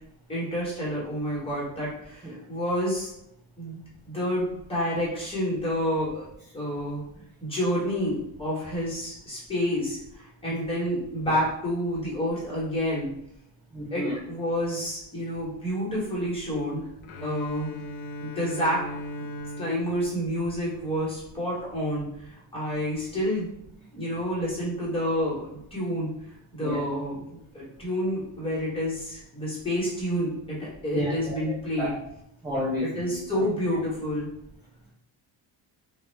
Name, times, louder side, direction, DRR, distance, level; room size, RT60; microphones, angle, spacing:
voice 1, 0.3-3.1 3.6-3.8 4.1-6.3 6.5-7.0 7.4-13.1 13.9-16.9 17.2-17.7 18.2-18.8 19.6-23.5 23.9-26.1 26.5-31.9 32.8-34.3, equal, 10° left, -6 dB, 0.9 m, -29 dB
voice 2, 13.7-14.1 26.6-26.8 30.9-31.4 31.8-31.9 32.4-32.9 33.3-33.5, left 1 dB, 10° right, -7 dB, 0.3 m, -30 dB
Bowed string instrument, 17.0-21.1, left 1 dB, 75° left, 0.5 m, -38 dB
2.1 x 2.0 x 3.1 m, 0.77 s
cardioid pair, 140°, 45 cm